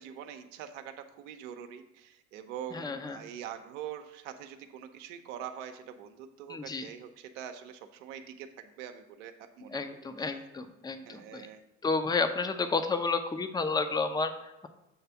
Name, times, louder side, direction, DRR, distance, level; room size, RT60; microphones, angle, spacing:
voice 1, 0.0-10.3 11.1-11.6, right 9 dB, 70° right, 7 dB, 0.8 m, -44 dB
voice 2, 2.7-3.2 6.5-6.9 9.7-11.5 11.8-14.7, left 4 dB, 10° left, 9 dB, 0.6 m, -31 dB
7.2 x 3.3 x 5.7 m, 0.95 s
hypercardioid pair, 65°, 39 cm